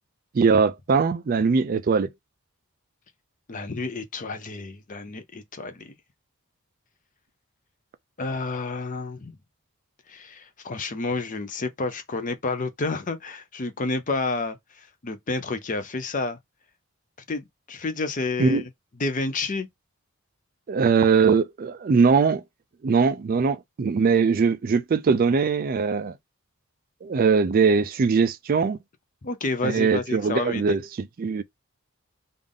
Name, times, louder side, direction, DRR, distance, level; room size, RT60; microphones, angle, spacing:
voice 1, 0.3-2.1 18.4-18.6 20.7-22.4 22.8-26.1 27.0-28.8 29.6-31.4, right 5 dB, 40° right, 0.3 m, -21 dB
voice 2, 3.5-5.9 8.2-9.3 10.1-16.4 17.3-18.6 19.0-19.7 29.2-30.8, left 3 dB, 35° left, 0.6 m, -30 dB
3.5 x 2.5 x 3.6 m
head